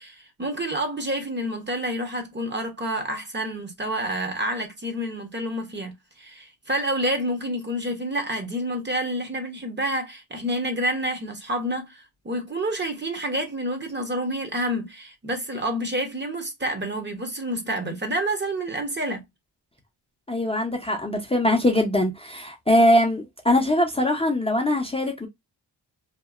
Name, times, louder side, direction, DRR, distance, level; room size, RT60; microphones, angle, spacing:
voice 1, 0.0-19.2, right 1 dB, 25° right, 0.8 m, -28 dB
voice 2, 20.3-25.3, left 1 dB, 15° left, 0.6 m, -22 dB
2.9 x 2.5 x 2.3 m
wide cardioid pair, 115°, 41 cm